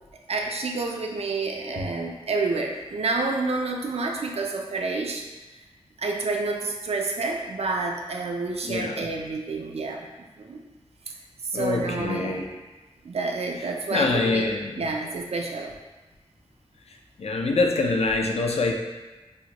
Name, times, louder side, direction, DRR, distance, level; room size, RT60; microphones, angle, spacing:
voice 1, 0.3-5.2 6.0-10.1 10.4-10.6 11.5-12.4 13.0-14.5 14.8-15.7, right 3 dB, 70° right, 1 dB, 0.4 m, -29 dB
voice 2, 8.6-9.1 11.5-12.5 13.6-14.8 17.2-18.7, left 3 dB, 70° left, 2 dB, 0.4 m, -25 dB
4.3 x 2.1 x 2.8 m, 1.1 s
wide cardioid pair, 65°, 11 cm